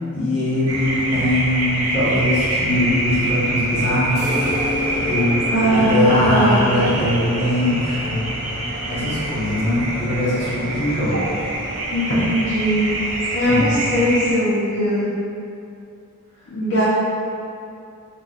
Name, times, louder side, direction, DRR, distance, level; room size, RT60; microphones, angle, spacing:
voice 1, 0.1-4.4 4.9-5.4 5.7-8.4 8.9-11.2 13.4-13.7, left 1 dB, 30° left, -10 dB, 1.0 m, -21 dB
sound 1, 0.7-14.3, right 1 dB, 70° right, 0.5 m, -26 dB
sound 2, 4.1-11.7, left 2 dB, 15° right, 1.3 m, -32 dB
voice 2, 5.5-6.7 11.9-12.9 13.3-15.1 16.5-16.9, equal, 55° left, -11 dB, 0.6 m, -20 dB
3.9 x 2.3 x 2.4 m, 2.5 s
head